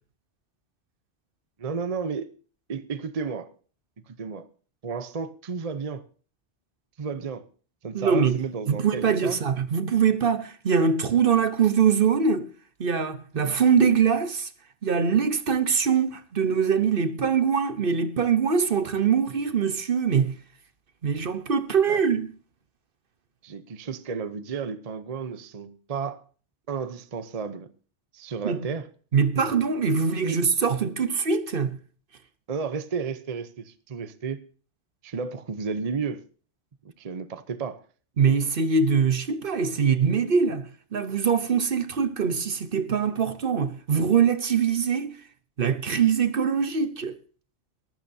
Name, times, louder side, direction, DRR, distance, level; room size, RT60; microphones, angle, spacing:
voice 1, 1.6-2.3 2.7-3.5 4.1-4.5 4.8-6.0 7.0-7.5 7.8-9.4 13.3-13.6 21.9-22.0 23.4-26.2 26.7-27.7 28.1-28.9 30.2-30.4 32.5-34.4 35.0-36.2 37.0-37.8, right 5 dB, 40° right, 0.8 m, -32 dB
voice 2, 7.9-8.4 8.7-12.5 12.8-14.5 14.8-20.3 21.0-22.3 28.4-28.7 29.1-31.8 38.2-45.2 45.6-47.2, right 6 dB, 55° right, 1.1 m, -23 dB
22.5 x 12.5 x 2.7 m
omnidirectional pair, 1.2 m